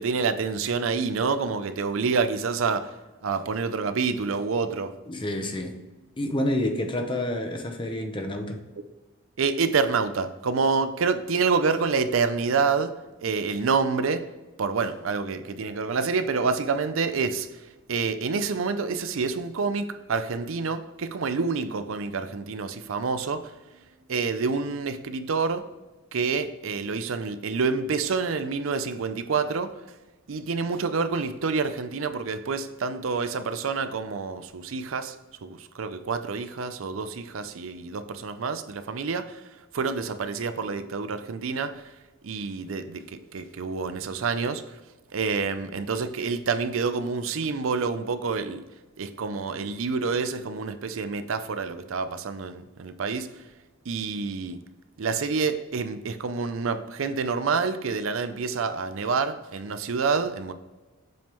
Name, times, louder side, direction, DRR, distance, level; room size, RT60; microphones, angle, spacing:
voice 1, 0.0-2.9 3.2-4.9 9.4-14.3 14.6-17.5 17.9-23.5 24.1-25.7 26.1-29.7 30.3-35.1 35.4-39.4 39.7-41.8 42.2-43.0 43.3-44.6 45.1-48.6 49.0-53.3 53.9-54.6 55.0-60.5, right 5 dB, 85° right, 0.5 m, -27 dB
voice 2, 5.1-5.8 6.2-8.6, left 1 dB, 25° left, 0.8 m, -28 dB
7.7 x 3.7 x 4.5 m
head